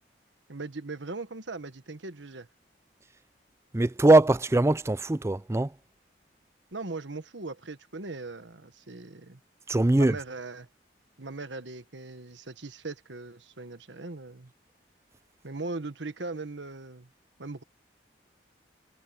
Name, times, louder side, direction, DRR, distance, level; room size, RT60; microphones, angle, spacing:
voice 1, 0.5-2.5 6.7-9.4 9.9-10.7 11.2-14.5 15.4-17.1 17.4-17.6, right 3 dB, 85° right, 1.4 m, -39 dB
voice 2, 3.7-5.7 9.7-10.2, right 2 dB, 15° right, 0.4 m, -21 dB
head